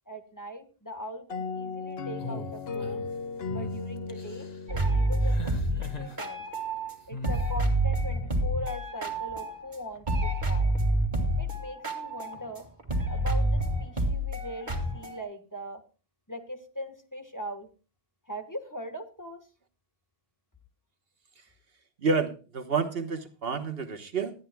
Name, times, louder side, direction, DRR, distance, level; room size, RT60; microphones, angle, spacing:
voice 1, 0.1-3.0 3.5-6.4 7.1-10.7 11.4-12.7 13.1-15.8 16.3-17.7 18.3-19.5, equal, 15° left, 6 dB, 1.4 m, -40 dB
sound 1, 1.3-5.9, left 4 dB, 70° left, 1.2 m, -37 dB
sound 2, 2.2-3.1 3.5-3.7 4.1-4.6 5.2-6.2 7.1-7.5, left 2 dB, 40° left, 1.6 m, -40 dB
sound 3, 4.7-6.9 7.2-9.8 10.0-15.2, right 1 dB, 45° right, 2.4 m, -28 dB
voice 2, 22.0-24.3, right 4 dB, 65° right, 8 dB, 1.4 m, -29 dB
19.5 x 12.5 x 2.3 m, 0.34 s
omnidirectional pair, 1.1 m